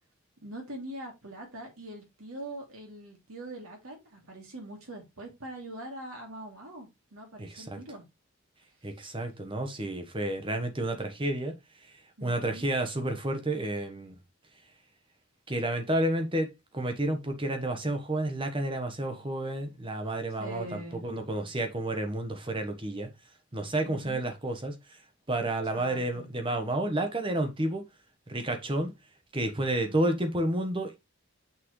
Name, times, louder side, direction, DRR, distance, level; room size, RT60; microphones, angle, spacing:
voice 1, 0.4-8.0 12.2-12.7 20.4-21.0 23.8-24.2 25.7-26.2 29.8-30.2, right 1 dB, 85° right, 2.7 m, -43 dB
voice 2, 7.4-7.8 8.8-11.5 12.2-14.2 15.5-23.1 23.5-25.0 25.3-27.8 28.3-28.9 29.3-31.1, right 1 dB, 25° right, 1.2 m, -30 dB
6.2 x 5.9 x 3.1 m
head